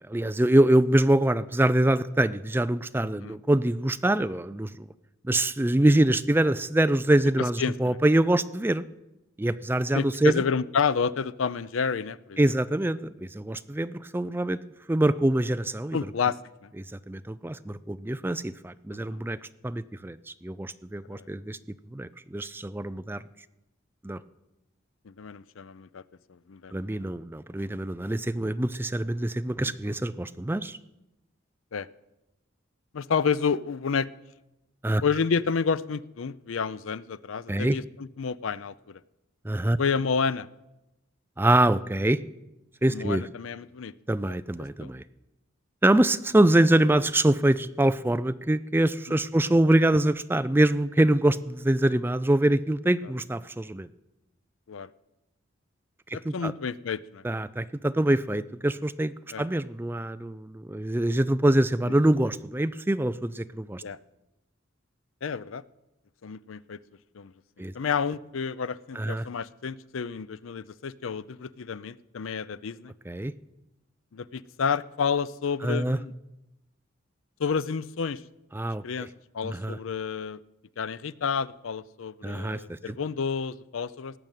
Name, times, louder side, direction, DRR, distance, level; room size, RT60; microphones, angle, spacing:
voice 1, 0.1-4.9 5.2-8.8 9.4-10.4 12.4-14.6 14.9-16.0 17.1-19.4 19.6-23.2 24.0-24.2 26.7-30.8 34.8-35.0 37.5-37.8 39.4-39.8 41.4-42.2 42.8-43.3 44.1-45.0 45.8-53.9 56.1-56.5 57.2-63.8 67.6-67.7 69.0-69.3 73.1-73.3 75.6-76.0 78.5-79.1 79.4-79.8 82.2-83.0, right 1 dB, 10° right, 13 dB, 0.4 m, -24 dB
voice 2, 7.6-8.0 9.9-12.4 15.9-16.7 19.1-19.2 21.1-21.3 25.1-26.0 26.3-26.8 29.6-29.7 31.7-31.9 32.9-34.1 35.0-39.0 39.8-40.5 42.9-43.9 44.8-44.9 54.7-54.9 56.1-57.2 59.3-59.5 61.8-61.9 63.8-64.0 65.2-65.6 66.2-66.8 67.1-67.3 67.7-72.9 74.1-76.1 77.4-78.2 78.6-79.1 79.3-80.4 80.8-84.1, left 6 dB, 90° left, 18 dB, 0.5 m, -30 dB
18.0 x 6.5 x 9.1 m, 0.94 s
head